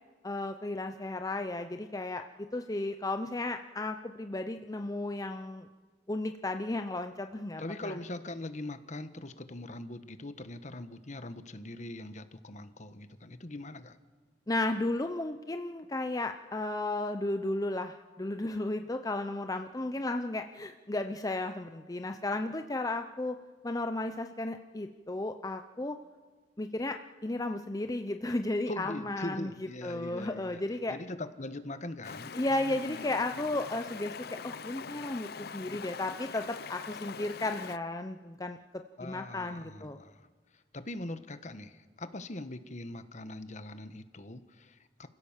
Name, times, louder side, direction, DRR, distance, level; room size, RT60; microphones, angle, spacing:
voice 1, 0.2-5.7 6.1-8.0 14.5-23.4 23.6-26.0 26.6-31.0 32.3-38.6 39.0-40.0, left 2 dB, 20° left, 7 dB, 0.7 m, -34 dB
voice 2, 7.6-14.0 28.7-30.6 30.9-32.3 39.0-40.3 40.7-45.1, left 1 dB, 45° left, 11 dB, 1.2 m, -41 dB
Stream, 32.0-37.8, left 5 dB, 60° left, 0.7 m, -43 dB
29.0 x 16.0 x 7.3 m, 1.4 s
head